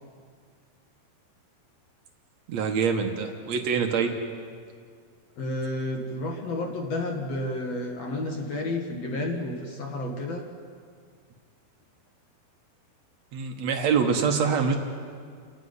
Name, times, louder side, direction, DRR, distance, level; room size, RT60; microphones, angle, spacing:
voice 1, 2.5-4.1 13.3-14.8, right 6 dB, 65° right, 4 dB, 1.8 m, -25 dB
voice 2, 5.4-10.5, left 2 dB, 50° left, 2 dB, 2.2 m, -31 dB
29.5 x 10.5 x 9.6 m, 2.1 s
omnidirectional pair, 4.7 m